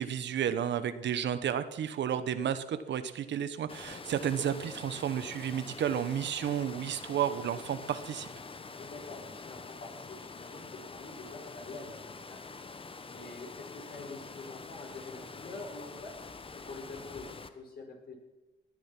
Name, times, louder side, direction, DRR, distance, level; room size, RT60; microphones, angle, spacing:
voice 1, 0.0-8.3, right 9 dB, 65° right, 12 dB, 1.1 m, -32 dB
Water, 3.7-17.5, left 4 dB, 25° left, 1.2 m, -46 dB
voice 2, 8.7-12.5 13.1-18.2, left 3 dB, 50° left, 1 dB, 5.2 m, -46 dB
18.5 x 10.5 x 6.0 m, 1.0 s
cardioid pair, 90°, 20 cm